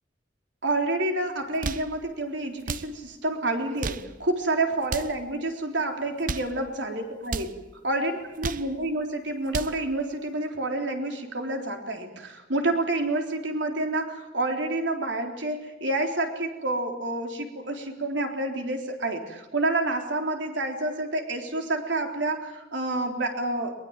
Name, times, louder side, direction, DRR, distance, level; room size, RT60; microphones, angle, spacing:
voice 1, 0.6-7.6 7.8-23.7, right 2 dB, 75° right, 4 dB, 3.8 m, -28 dB
sound 1, 1.4-1.9 2.6-2.9 3.6-4.1 4.8-5.2 6.1-6.6 7.2-7.6 8.2-8.7 9.3-9.8, right 4 dB, 45° right, 0.8 m, -33 dB
23.0 x 21.5 x 8.9 m, 0.99 s
head